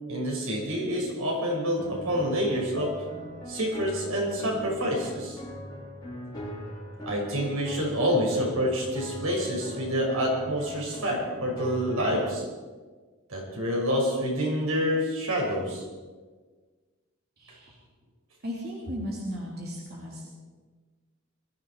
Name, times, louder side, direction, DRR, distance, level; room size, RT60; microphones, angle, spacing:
voice 1, 0.1-2.9 3.5-5.4 7.0-12.4 13.3-15.8, equal, 85° right, -2 dB, 5.9 m, -27 dB
sound 1, 1.8-12.2, equal, 20° left, 6.5 m, -40 dB
voice 2, 17.4-17.8 18.4-20.3, equal, 45° right, -4 dB, 3.1 m, -36 dB
21.5 x 14.0 x 4.8 m, 1.4 s
head